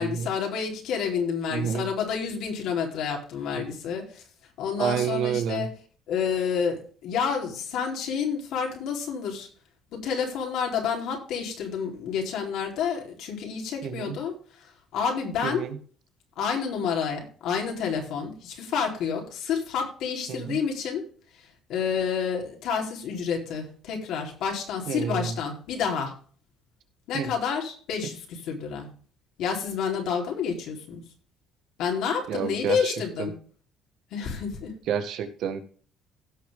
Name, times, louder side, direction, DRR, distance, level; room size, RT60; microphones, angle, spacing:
voice 1, 0.0-4.2 4.6-5.7 6.1-9.5 9.9-15.7 16.4-21.1 21.4-26.1 27.1-28.9 29.4-31.0 31.8-33.3 34.1-34.8, left 6 dB, 75° left, 0 dB, 4.1 m, -29 dB
voice 2, 1.5-1.9 3.6-3.7 4.8-5.7 13.8-14.2 15.4-15.8 20.3-20.6 24.9-25.4 27.1-27.3 32.3-33.3 34.9-35.6, right 8 dB, 70° right, 7 dB, 1.8 m, -29 dB
16.5 x 6.6 x 3.8 m, 0.43 s
cardioid pair, 105°, 0 cm